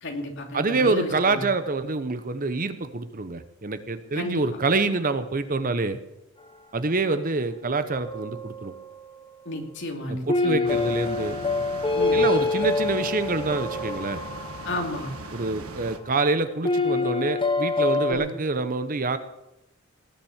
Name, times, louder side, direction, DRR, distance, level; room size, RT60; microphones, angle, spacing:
voice 1, 0.0-1.5 4.1-4.4 9.4-10.7 11.9-12.2 14.6-15.1 18.1-18.3, left 1 dB, 55° left, 2 dB, 2.7 m, -32 dB
voice 2, 0.5-6.0 6.7-8.7 10.1-11.4 12.1-14.2 15.3-19.2, right 3 dB, 40° right, 11 dB, 0.9 m, -26 dB
sound 1, 7.9-9.3 10.3-15.3 16.6-18.1, left 3 dB, 25° left, 1.0 m, -26 dB
sound 2, 10.7-16.0, right 2 dB, 75° right, 1.4 m, -40 dB
19.0 x 7.4 x 7.3 m, 0.88 s
head